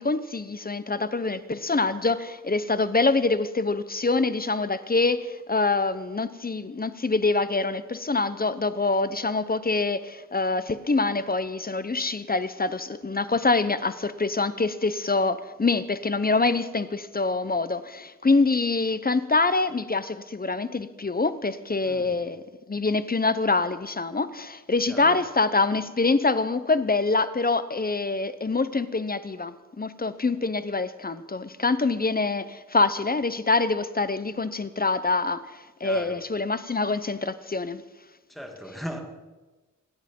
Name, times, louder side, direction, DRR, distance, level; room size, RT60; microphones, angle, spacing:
voice 1, 0.0-37.8, left 3 dB, 30° left, 13 dB, 0.9 m, -25 dB
voice 2, 21.8-22.2 24.9-25.2 35.8-36.2 38.3-39.1, equal, ahead, 4 dB, 2.2 m, -38 dB
26.0 x 10.0 x 5.4 m, 1.2 s
wide cardioid pair, 100°, 33 cm